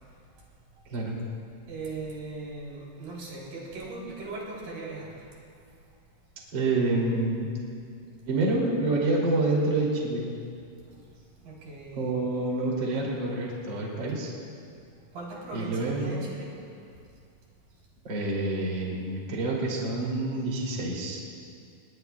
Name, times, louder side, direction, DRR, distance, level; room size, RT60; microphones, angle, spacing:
voice 1, 1.7-5.1 11.4-12.1 15.1-16.5, right 3 dB, 80° right, -4 dB, 5.3 m, -39 dB
voice 2, 6.5-7.5 8.3-10.3 12.0-14.3 15.5-16.1 18.0-21.2, right 2 dB, 35° right, -3 dB, 3.2 m, -27 dB
29.0 x 20.0 x 2.3 m, 2.4 s
omnidirectional pair, 3.9 m